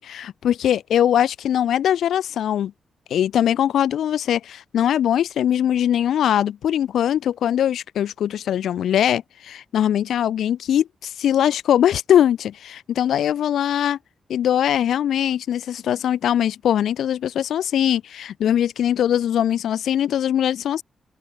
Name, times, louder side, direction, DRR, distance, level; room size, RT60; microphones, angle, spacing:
voice 1, 0.0-2.7 3.1-14.0 14.3-20.8, left 10 dB, 90° left, 6.6 m, -21 dB
wide cardioid pair, 160°, 0 cm